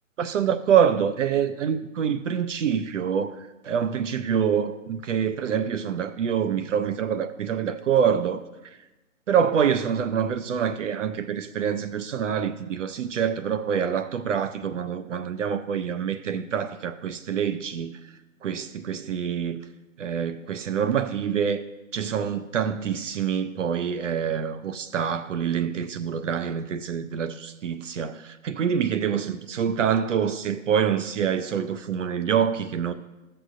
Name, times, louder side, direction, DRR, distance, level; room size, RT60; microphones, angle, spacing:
voice 1, 0.2-8.8 9.3-17.9 18.4-19.6 20.0-21.6 21.9-32.9, right 8 dB, 60° right, 0.6 m, -26 dB
14.0 x 6.7 x 2.5 m
hypercardioid pair, 145°, 42 cm